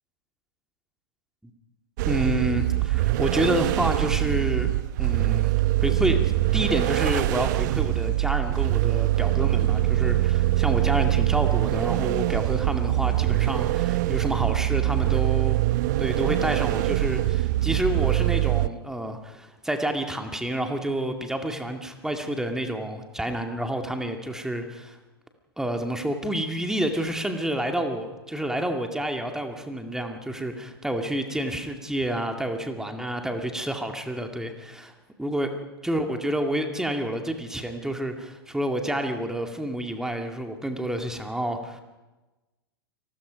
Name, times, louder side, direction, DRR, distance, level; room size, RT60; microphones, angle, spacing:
voice 1, 2.0-4.7 5.0-5.5 5.8-6.2 6.5-15.6 16.0-25.0 25.6-34.9 35.2-35.5 35.8-41.8, right 1 dB, 5° right, 5 dB, 2.2 m, -29 dB
sound 1, 2.0-18.7, right 16 dB, 50° right, 0.6 m, -23 dB
29.0 x 20.0 x 5.2 m, 1.1 s
figure-of-eight pair, 95°, 13 cm